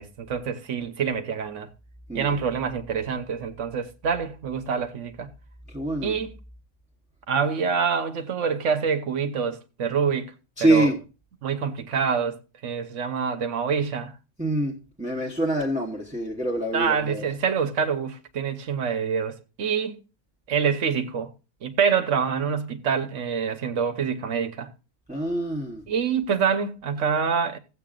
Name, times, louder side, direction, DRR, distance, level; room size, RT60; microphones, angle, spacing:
voice 1, 0.0-1.7 2.1-5.3 6.0-6.4 7.3-10.3 10.6-10.9 11.4-14.1 16.7-20.0 20.5-21.3 21.6-24.7 25.9-27.6, right 6 dB, 65° right, 1.2 m, -26 dB
voice 2, 2.1-2.4 5.7-6.1 10.6-11.0 14.4-17.2 25.1-25.8, right 1 dB, 5° right, 1.0 m, -25 dB
16.0 x 8.0 x 2.4 m
omnidirectional pair, 1.4 m